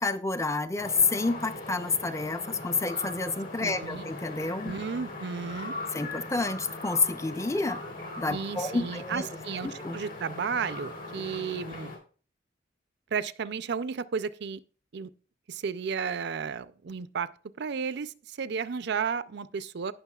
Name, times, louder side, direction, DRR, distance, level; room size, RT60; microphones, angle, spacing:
voice 1, 0.0-4.7 5.9-7.8 8.2-9.3 9.6-10.0, left 3 dB, 15° left, 0.5 m, -29 dB
sound 1, 0.8-12.0, left 2 dB, 55° left, 4.1 m, -40 dB
voice 2, 3.6-4.0 4.6-5.7 8.3-11.9 13.1-14.6 14.9-15.1 15.5-17.3 17.6-19.9, right 6 dB, 65° right, 0.5 m, -33 dB
18.0 x 6.2 x 2.3 m
head